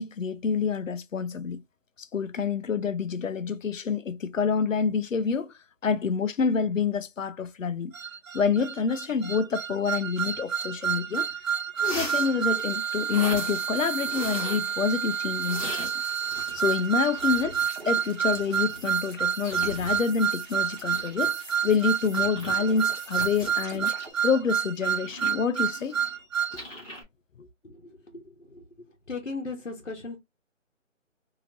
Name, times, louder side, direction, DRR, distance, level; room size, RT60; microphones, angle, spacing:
voice 1, 0.0-1.6 2.0-5.5 5.8-7.9 8.3-11.5 11.8-15.9 16.5-17.6 17.9-21.4 21.6-23.9 24.2-26.0 26.5-26.6 27.4-27.5, left 6 dB, 75° left, 0.6 m, -27 dB
sound 1, 7.9-26.6, right 8 dB, 85° right, 0.8 m, -29 dB
sound 2, 11.8-12.4 13.1-13.7 14.1-14.7 15.4-16.8 17.1-17.6 18.3-18.9 19.4-20.0 20.7-21.3 22.1-22.6 23.1-23.5 24.0-26.2 26.5-27.0, equal, 25° left, 1.1 m, -39 dB
sound 3, 13.1-24.1, right 3 dB, 55° right, 1.1 m, -47 dB
voice 2, 27.6-28.6 29.1-30.2, left 3 dB, 60° left, 1.1 m, -37 dB
2.9 x 2.7 x 2.5 m
figure-of-eight pair, 180°, 39 cm